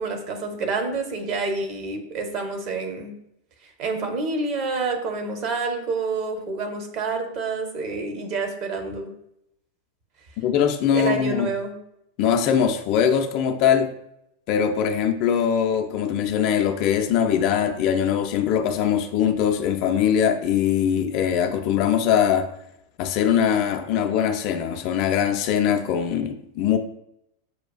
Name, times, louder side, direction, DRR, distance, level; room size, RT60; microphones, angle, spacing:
voice 1, 0.0-3.1 3.8-9.1 10.9-11.7, right 3 dB, 40° right, 4 dB, 0.7 m, -28 dB
voice 2, 10.4-11.5 12.2-13.9 14.5-22.5 23.0-26.8, left 8 dB, 45° left, 6 dB, 0.3 m, -22 dB
6.3 x 2.3 x 2.3 m, 0.78 s
figure-of-eight pair, 90°, 0 cm